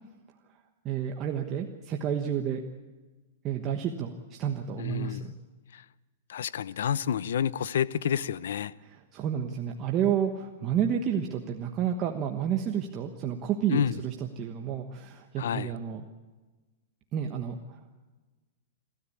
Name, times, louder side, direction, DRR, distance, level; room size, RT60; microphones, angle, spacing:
voice 1, 0.8-2.6 3.4-5.3 8.8-16.0 17.1-17.6, right 8 dB, 25° right, 1.2 m, -30 dB
voice 2, 4.8-5.2 5.7-5.8 6.3-8.7 13.7-14.0 15.4-15.7, left 9 dB, 75° left, 0.7 m, -29 dB
28.0 x 13.0 x 8.6 m
supercardioid pair, 160°, 0 cm